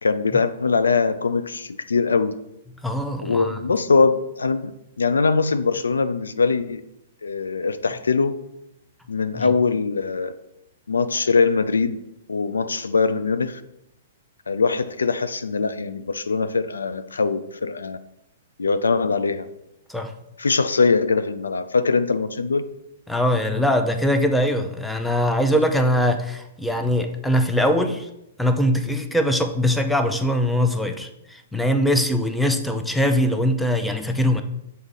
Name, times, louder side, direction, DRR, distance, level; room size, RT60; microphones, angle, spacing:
voice 1, 0.0-2.3 3.2-4.7 5.0-6.8 7.2-8.4 9.1-10.3 10.9-12.0 12.3-13.6 14.5-18.0 18.6-19.5 20.4-22.6, left 4 dB, 80° left, 12 dB, 0.3 m, -22 dB
voice 2, 2.8-3.6 9.4-9.5 19.9-20.1 23.1-28.1 28.4-34.4, equal, ahead, 6 dB, 0.5 m, -22 dB
6.5 x 4.1 x 3.7 m, 0.85 s
hypercardioid pair, 120°, 0 cm